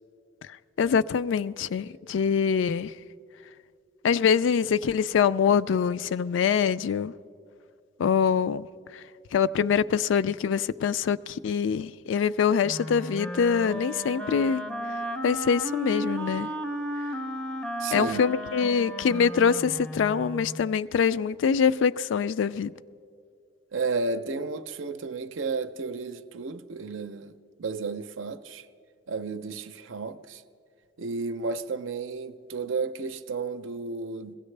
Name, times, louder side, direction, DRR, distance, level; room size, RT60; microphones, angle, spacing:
voice 1, 0.8-2.9 4.0-7.1 8.0-8.7 9.3-14.6 15.2-16.5 17.9-22.7, left 6 dB, 70° left, 0.3 m, -24 dB
Wind instrument woodwind instrument, 12.6-20.7, equal, 5° left, 0.5 m, -34 dB
voice 2, 17.8-18.2 23.7-27.3 27.6-28.7 29.1-30.4 31.0-34.4, right 4 dB, 80° right, 0.6 m, -32 dB
21.0 x 16.5 x 3.3 m
head